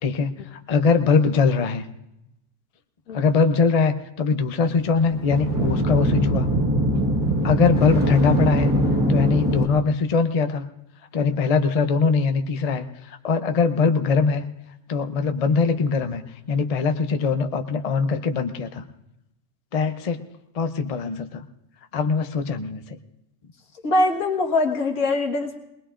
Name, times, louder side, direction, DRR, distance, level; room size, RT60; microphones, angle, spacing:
voice 1, 0.0-1.8 3.1-6.5 7.4-8.7 9.1-10.7 11.1-14.5 14.9-16.2 16.5-18.9 19.7-20.2 20.5-21.5 21.9-23.0, left 5 dB, 45° left, 7 dB, 0.4 m, -22 dB
sound 1, 4.7-9.7, equal, 15° right, 1.3 m, -22 dB
voice 2, 23.8-25.6, left 2 dB, 75° left, 2 dB, 1.8 m, -22 dB
21.5 x 20.0 x 2.5 m, 0.87 s
omnidirectional pair, 1.5 m